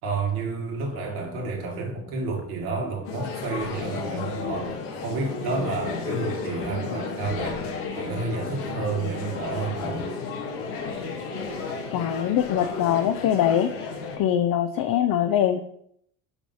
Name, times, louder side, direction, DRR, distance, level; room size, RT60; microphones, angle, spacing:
voice 1, 0.0-4.7 5.0-7.6 8.0-10.0, right 3 dB, 80° right, 0 dB, 2.1 m, -30 dB
Singing, 0.7-10.5, left 3 dB, 30° left, 1.7 m, -42 dB
sound 1, 3.0-14.2, left 4 dB, 85° left, 1.6 m, -33 dB
voice 2, 11.9-13.8 14.2-15.6, left 10 dB, 50° left, 7 dB, 0.7 m, -23 dB
5.9 x 5.3 x 5.6 m, 0.70 s
hypercardioid pair, 65°, 45 cm